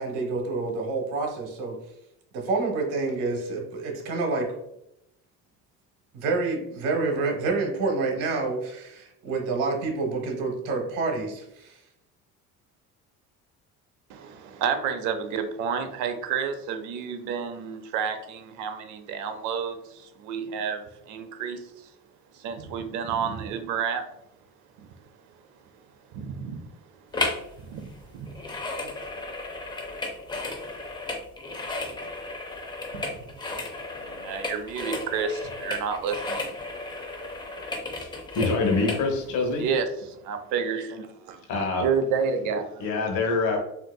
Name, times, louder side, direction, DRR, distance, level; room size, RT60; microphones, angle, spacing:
voice 1, 0.0-1.8 2.3-4.5 6.1-11.8, right 3 dB, 85° right, 1.1 m, -28 dB
voice 2, 14.1-21.7 22.3-24.0 24.8-24.9 26.1-26.6 27.5-28.3 28.8-28.9 32.9-33.2 34.0-36.5 37.5-37.7 39.6-41.4 41.8-42.9, right 6 dB, 65° right, 0.6 m, -30 dB
sound 1, 27.1-27.5 27.8-39.1 39.6-39.7, left 2 dB, 15° left, 0.5 m, -34 dB
voice 3, 38.3-39.6 41.5-41.9 42.8-43.6, left 3 dB, 65° left, 1.0 m, -25 dB
3.7 x 2.7 x 2.2 m
cardioid pair, 115°, 32 cm